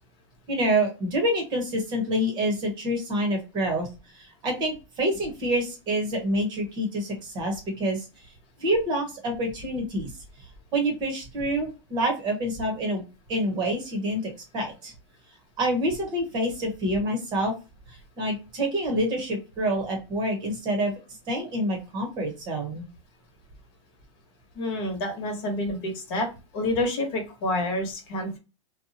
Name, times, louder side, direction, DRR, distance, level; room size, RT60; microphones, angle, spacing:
voice 1, 0.5-3.9 4.1-8.1 8.6-10.1 10.7-14.9 15.6-17.5 17.9-20.9 21.3-22.8, right 1 dB, 25° right, 2 dB, 0.9 m, -27 dB
voice 2, 24.5-26.3 26.5-28.4, left 1 dB, 50° left, 2 dB, 1.1 m, -28 dB
2.8 x 2.2 x 2.7 m, 0.30 s
supercardioid pair, 150°, 16 cm